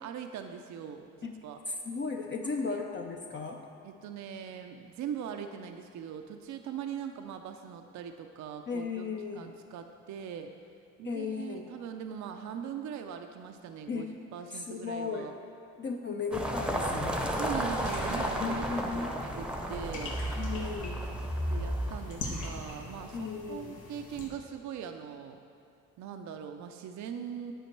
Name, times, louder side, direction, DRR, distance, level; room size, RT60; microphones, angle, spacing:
voice 1, 0.0-1.6 2.4-2.8 3.8-9.1 9.4-10.5 11.0-15.3 17.4-20.2 21.5-25.4 26.0-27.5, right 8 dB, 70° right, 6 dB, 0.5 m, -41 dB
voice 2, 1.7-3.6 8.7-9.6 11.0-11.7 13.9-14.1 14.5-15.3 15.8-17.3 18.4-19.2 20.4-21.0 23.1-23.7, left 4 dB, 40° left, 1 dB, 0.6 m, -36 dB
sound 1, 16.3-23.2, equal, 5° right, 0.7 m, -33 dB
sound 2, 17.6-24.3, left 2 dB, 85° left, 1.4 m, -44 dB
10.0 x 5.1 x 4.5 m, 2.4 s
cardioid pair, 90°, 30 cm